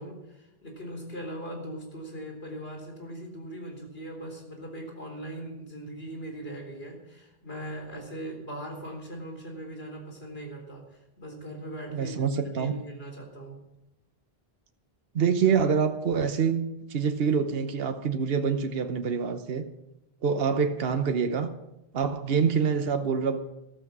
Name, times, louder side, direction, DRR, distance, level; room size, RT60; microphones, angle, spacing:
voice 1, 0.0-10.8 11.2-13.6 20.5-20.6, right 1 dB, 75° left, 2 dB, 4.3 m, -40 dB
voice 2, 11.9-12.7 15.1-19.6 20.2-21.5 21.9-23.4, right 6 dB, 70° right, 7 dB, 1.1 m, -26 dB
14.0 x 13.5 x 6.1 m, 0.92 s
omnidirectional pair, 1.0 m